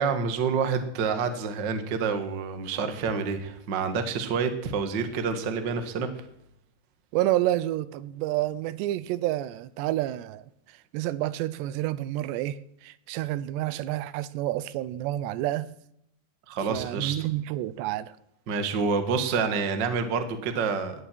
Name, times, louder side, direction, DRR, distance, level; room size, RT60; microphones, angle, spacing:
voice 1, 0.0-6.1 16.5-17.1 18.5-20.9, right 5 dB, 55° right, 8 dB, 1.2 m, -28 dB
voice 2, 7.1-10.5 10.9-15.7 16.7-18.2, right 14 dB, 85° right, 17 dB, 2.9 m, -29 dB
18.5 x 14.0 x 4.6 m, 0.77 s
omnidirectional pair, 4.9 m